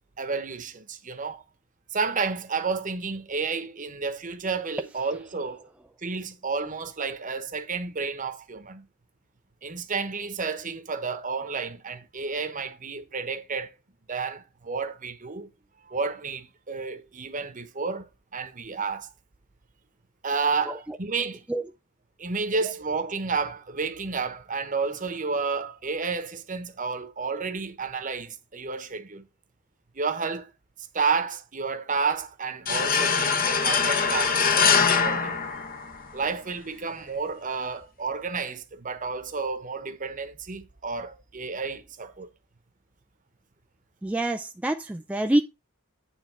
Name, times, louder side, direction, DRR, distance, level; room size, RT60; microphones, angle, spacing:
voice 1, 0.2-1.4 1.9-5.7 6.0-8.9 9.6-13.7 14.1-15.5 15.8-19.1 20.2-21.4 22.2-29.2 29.9-30.5 30.9-35.4 36.1-42.3, right 4 dB, 40° right, 1.0 m, -31 dB
voice 2, 20.7-21.0 21.5-21.6 44.0-45.4, right 1 dB, 5° right, 0.3 m, -26 dB
sound 1, 32.7-36.2, left 6 dB, 45° left, 1.0 m, -23 dB
9.2 x 3.5 x 5.8 m
head